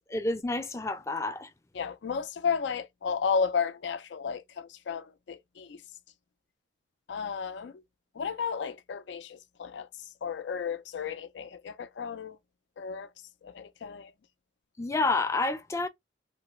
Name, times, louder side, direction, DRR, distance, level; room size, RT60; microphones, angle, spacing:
voice 1, 0.1-1.5 14.8-15.9, left 3 dB, 15° left, 0.3 m, -29 dB
voice 2, 1.7-5.8 7.1-7.8 8.2-9.9 10.2-12.4 12.8-13.1 13.4-14.1, left 6 dB, 85° left, 0.4 m, -33 dB
3.2 x 2.0 x 3.0 m
head